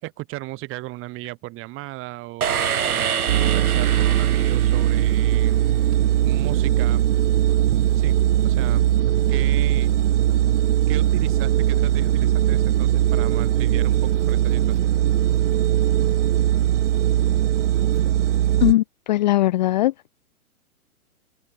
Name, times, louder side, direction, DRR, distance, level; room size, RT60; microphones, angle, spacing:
voice 1, 0.0-5.6 6.2-7.0 7.9-8.1 8.4-8.9 9.3-9.9 10.9-15.0, right 20 dB, 30° right, 4.5 m, -35 dB
sound 1, 2.4-5.6, right 8 dB, 85° right, 1.2 m, -27 dB
sound 2, 3.3-18.7, right 12 dB, 55° right, 2.9 m, -20 dB
voice 2, 18.6-19.9, left 16 dB, 30° left, 0.5 m, -19 dB
open air
hypercardioid pair, 125°, 43 cm